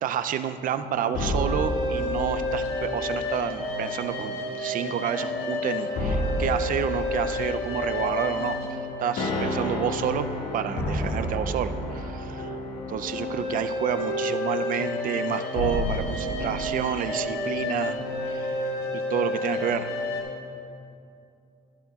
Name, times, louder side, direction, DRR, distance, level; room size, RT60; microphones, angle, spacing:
voice 1, 0.0-8.6 9.0-10.3 10.5-12.5 12.9-18.6 18.9-19.9, right 9 dB, 55° right, 11 dB, 0.5 m, -29 dB
sound 1, 0.7-20.2, left 1 dB, 70° left, 1.9 m, -29 dB
14.5 x 11.5 x 2.4 m, 2.6 s
cardioid pair, 110°, 17 cm